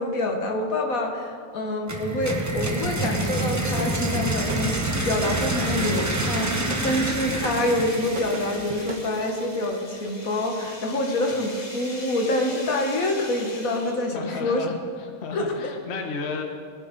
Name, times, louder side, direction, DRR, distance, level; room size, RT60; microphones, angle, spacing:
voice 1, 0.0-14.6 15.3-15.5, left 1 dB, 75° left, 2 dB, 1.8 m, -26 dB
sound 1, 1.9-9.7, right 1 dB, 15° right, 0.9 m, -28 dB
sound 2, 3.4-9.1, right 3 dB, 40° right, 0.8 m, -37 dB
sound 3, 7.0-14.2, left 2 dB, 30° left, 1.3 m, -42 dB
voice 2, 14.1-16.4, left 4 dB, 50° left, 2 dB, 1.3 m, -33 dB
19.0 x 7.2 x 5.2 m, 2.1 s
omnidirectional pair, 1.5 m